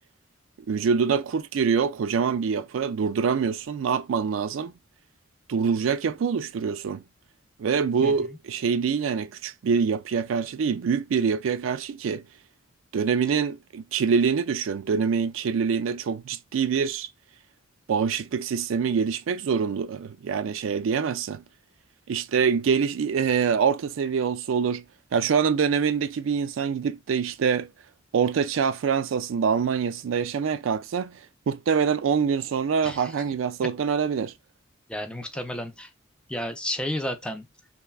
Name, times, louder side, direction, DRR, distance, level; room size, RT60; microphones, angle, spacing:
voice 1, 0.7-4.7 5.5-7.0 7.6-12.2 12.9-17.1 17.9-21.4 22.1-24.8 25.1-27.7 28.1-31.2 31.5-34.3, right 6 dB, 80° right, 0.4 m, -25 dB
voice 2, 32.8-33.1 34.9-35.9 36.3-37.5, left 1 dB, 5° left, 0.4 m, -32 dB
3.2 x 2.1 x 2.3 m
head